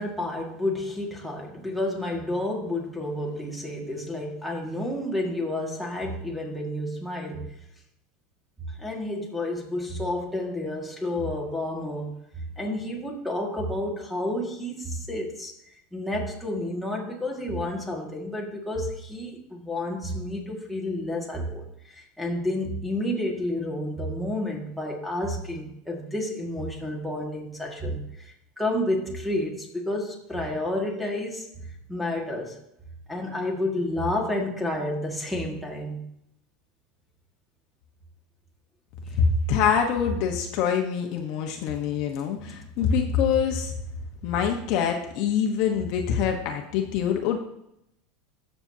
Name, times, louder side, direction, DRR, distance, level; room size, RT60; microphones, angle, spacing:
voice 1, 0.0-7.4 8.7-12.1 12.6-15.5 15.9-31.5 31.9-32.6 33.1-36.1, left 1 dB, ahead, -3 dB, 2.1 m, -30 dB
voice 2, 39.2-43.7 44.2-47.4, left 7 dB, 55° left, 3 dB, 1.2 m, -25 dB
17.0 x 6.9 x 2.9 m, 0.79 s
supercardioid pair, 140°, 0 cm